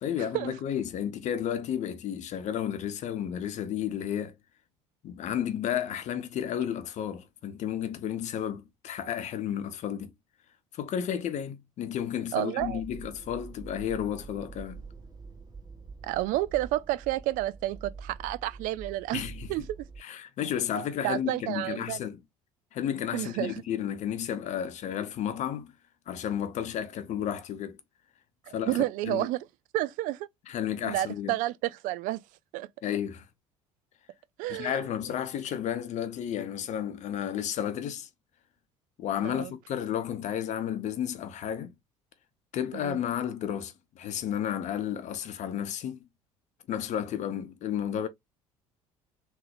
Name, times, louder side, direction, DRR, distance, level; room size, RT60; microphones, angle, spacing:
voice 1, 0.0-4.3 5.0-10.1 10.7-14.8 19.1-19.5 20.0-22.2 22.7-25.7 26.1-27.8 28.5-28.8 29.1-29.3 30.5-31.4 32.8-33.3 34.5-38.1 39.0-41.7 42.5-46.1 46.7-48.1, left 9 dB, 45° left, 0.7 m, -32 dB
voice 2, 12.3-12.8 16.0-19.2 19.5-19.6 21.0-22.0 23.1-23.6 28.5-29.4 29.7-30.3 30.8-32.2 32.5-32.7 34.4-34.8 39.2-39.5 42.7-43.0, right 16 dB, 50° right, 0.4 m, -30 dB
sound 1, 12.6-20.0, right 4 dB, 25° right, 1.9 m, -45 dB
3.7 x 2.6 x 3.4 m
figure-of-eight pair, 60°, 17 cm